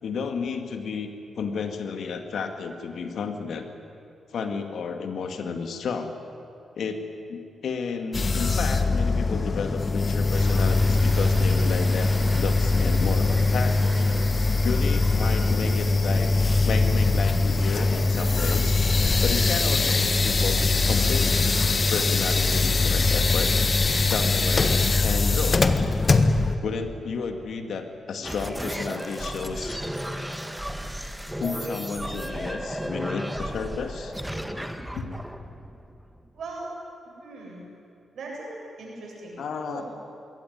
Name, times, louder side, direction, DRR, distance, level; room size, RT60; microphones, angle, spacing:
voice 1, 0.0-3.7 4.3-6.2 6.8-7.0 7.3-14.0 14.6-16.3 16.6-18.8 19.2-21.5 21.9-23.5 24.0-25.6 26.6-29.8 31.4-34.1 34.9-35.1 39.4-39.8, left 5 dB, 75° left, 6 dB, 2.1 m, -32 dB
sound 1, 8.1-26.6, left 3 dB, 40° left, 1.5 m, -22 dB
sound 2, 10.3-19.4, right 3 dB, 50° right, 3.6 m, -44 dB
sound 3, 28.2-36.4, equal, 5° right, 1.6 m, -34 dB
voice 2, 36.3-36.7 37.2-37.6 38.1-39.4 39.7-39.8, right 2 dB, 70° right, -2 dB, 7.8 m, -39 dB
21.0 x 17.5 x 9.5 m, 2.6 s
cardioid pair, 55°, 0 cm